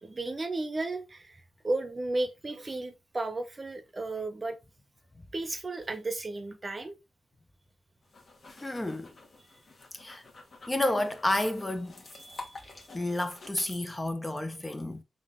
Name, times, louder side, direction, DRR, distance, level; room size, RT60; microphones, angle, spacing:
voice 1, 0.0-4.6 5.3-6.9 12.1-12.7, right 2 dB, 30° right, 0.7 m, -34 dB
sound 1, 8.0-13.8, left 3 dB, 50° left, 1.2 m, -49 dB
voice 2, 8.6-9.1 9.9-10.2 10.7-11.9 12.9-15.0, left 1 dB, 20° left, 0.5 m, -30 dB
3.7 x 2.5 x 3.6 m
cardioid pair, 75°, 0 cm